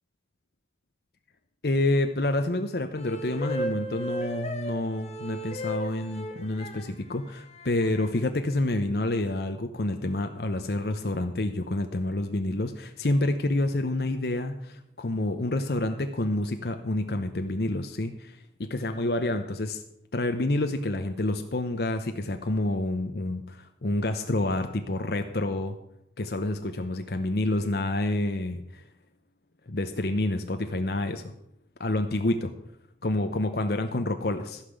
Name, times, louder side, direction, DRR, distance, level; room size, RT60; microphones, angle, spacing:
voice 1, 1.6-19.8 20.1-25.7 26.2-28.8 29.7-31.3 31.8-32.5 33.0-34.6, left 2 dB, 60° left, 7 dB, 0.8 m, -28 dB
sound 1, 2.9-6.8 7.6-8.2, right 1 dB, 35° left, 1.4 m, -35 dB
15.0 x 5.9 x 8.0 m, 0.77 s
head